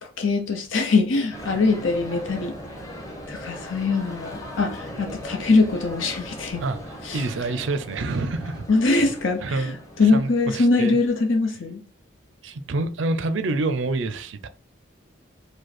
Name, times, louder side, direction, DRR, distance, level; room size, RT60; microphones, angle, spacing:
voice 1, 0.0-2.5 3.3-6.6 7.0-7.2 8.7-11.8, left 3 dB, 80° left, 0.8 m, -22 dB
sound 1, 1.3-11.2, equal, 15° left, 0.8 m, -39 dB
voice 2, 7.1-8.6 9.4-9.8 10.1-11.0 12.4-14.5, right 2 dB, 70° right, 0.5 m, -27 dB
5.1 x 2.1 x 4.2 m
head